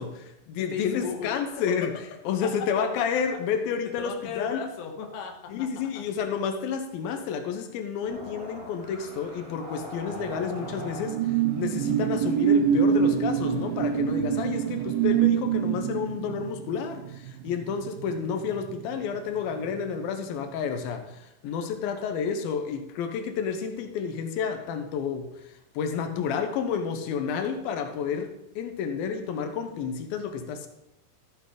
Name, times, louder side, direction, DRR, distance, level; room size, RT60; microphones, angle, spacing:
voice 1, 0.0-1.9 2.3-4.6 5.5-30.7, left 6 dB, 85° left, 7 dB, 2.7 m, -30 dB
voice 2, 0.6-1.9 4.0-5.9 21.4-21.7, left 6 dB, 55° left, 1 dB, 1.8 m, -37 dB
sound 1, 8.1-15.3, equal, 15° right, 4.3 m, -44 dB
sound 2, 10.2-19.2 19.5-19.8, right 8 dB, 80° right, 2.2 m, -26 dB
14.0 x 7.9 x 3.9 m, 0.85 s
omnidirectional pair, 4.2 m